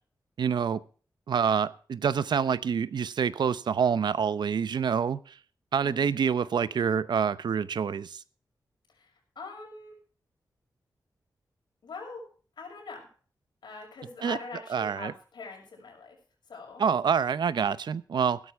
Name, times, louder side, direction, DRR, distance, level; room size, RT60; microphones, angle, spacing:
voice 1, 0.4-0.8 1.3-5.2 5.7-8.2 14.2-14.4 14.7-15.1 16.8-18.4, right 7 dB, 80° right, 0.7 m, -26 dB
voice 2, 8.9-10.0 11.8-12.3 12.6-13.1 13.6-16.2 16.5-16.8, left 4 dB, 80° left, 6.3 m, -43 dB
16.0 x 12.5 x 3.5 m
wide cardioid pair, 140°, 7 cm